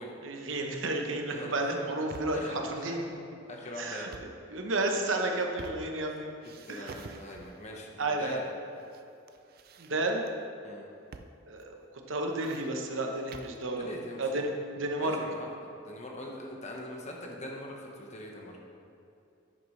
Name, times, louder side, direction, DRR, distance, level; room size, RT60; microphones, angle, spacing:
voice 1, 0.2-3.0 3.8-4.1 4.5-6.3 6.7-6.9 8.0-8.4 9.8-10.2 11.5-11.8 12.1-13.9 14.2-14.5 14.8-15.2, right 2 dB, 70° right, 2 dB, 1.0 m, -31 dB
voice 2, 1.3-1.8 2.3-3.0 3.5-4.1 6.6-8.5 10.6-10.9 13.6-14.4 15.0-15.5 15.8-18.6, left 1 dB, 35° left, 0 dB, 1.2 m, -42 dB
sound 1, 1.9-2.5 4.0-4.4 4.9-6.1 6.4-7.7 8.4-9.0 9.3-10.3 11.1-11.4 11.6-11.7 12.1-13.6, right 4 dB, 50° right, 0.4 m, -49 dB
10.0 x 9.8 x 3.3 m, 2.6 s
head